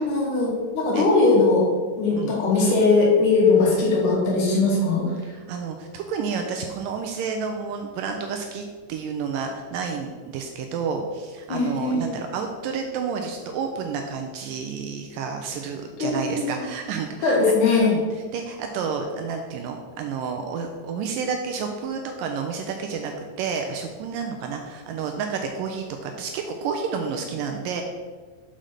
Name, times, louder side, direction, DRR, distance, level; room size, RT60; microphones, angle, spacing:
voice 1, 0.0-1.7 2.0-5.1 11.5-12.1 16.0-16.4 17.2-17.9, left 3 dB, 60° left, -3 dB, 2.9 m, -20 dB
voice 2, 5.3-17.4 17.9-18.0 18.3-27.8, right 5 dB, 80° right, 4 dB, 2.1 m, -30 dB
6.3 x 5.1 x 5.7 m, 1.4 s
omnidirectional pair, 4.3 m